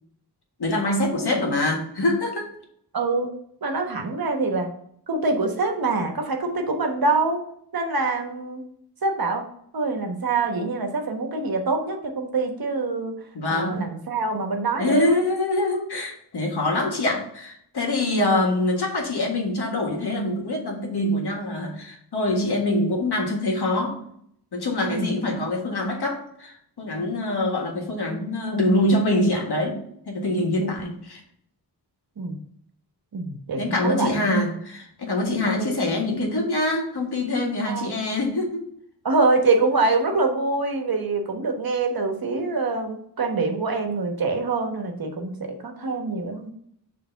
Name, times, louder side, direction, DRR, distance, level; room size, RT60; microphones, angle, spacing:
voice 1, 0.6-2.5 13.3-13.8 14.8-24.0 24.5-29.8 30.1-31.2 33.6-38.7, left 1 dB, 65° left, 1 dB, 1.7 m, -24 dB
voice 2, 2.9-3.3 3.6-4.7 5.1-7.4 7.7-8.6 9.0-9.4 9.7-13.1 13.4-15.2 18.0-18.3 24.8-25.2 30.6-30.7 32.2-32.4 33.1-34.3 35.5-35.8 37.6-37.9 39.0-46.5, right 3 dB, 55° right, 4 dB, 1.2 m, -25 dB
6.7 x 3.4 x 5.7 m, 0.69 s
wide cardioid pair, 105°, 41 cm